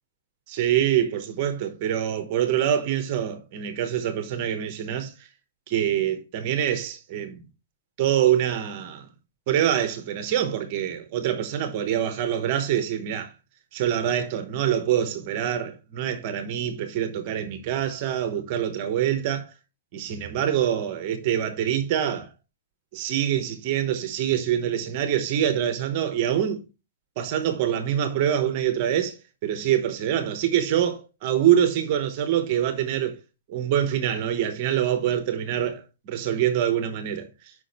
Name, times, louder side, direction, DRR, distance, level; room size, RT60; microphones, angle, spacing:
voice 1, 0.5-5.3 5.7-7.4 8.0-9.1 9.5-13.3 13.7-19.5 19.9-22.3 22.9-26.6 27.2-33.2 33.5-37.5, right 10 dB, 30° right, 0.9 m, -25 dB
6.2 x 5.1 x 4.2 m
hypercardioid pair, 175°, 0 cm